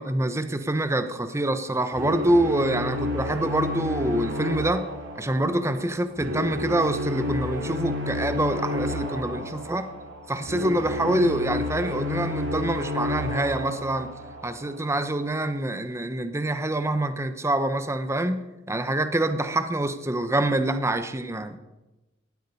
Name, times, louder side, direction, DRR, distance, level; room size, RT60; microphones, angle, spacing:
voice 1, 0.0-4.9 5.2-9.9 10.3-14.1 14.4-21.6, right 1 dB, 15° right, 10 dB, 0.8 m, -26 dB
sound 1, 1.9-15.0, left 1 dB, 70° right, 3.0 m, -31 dB
18.0 x 13.0 x 5.4 m, 1.0 s
head